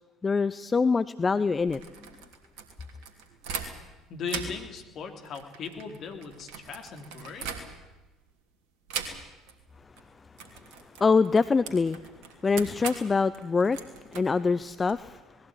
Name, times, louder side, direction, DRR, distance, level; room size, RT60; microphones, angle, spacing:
voice 1, 0.2-1.8 11.0-12.0 12.4-13.8 14.1-15.2, left 4 dB, 25° left, 15 dB, 0.7 m, -24 dB
sound 1, 1.5-4.0 4.2-8.1 8.9-9.6 9.8-10.0 10.3-14.9, right 6 dB, 65° right, 3.1 m, -40 dB
voice 2, 4.1-7.5, left 5 dB, 50° left, 5 dB, 3.4 m, -38 dB
20.0 x 15.5 x 9.9 m, 1.1 s
hypercardioid pair, 60°, 0 cm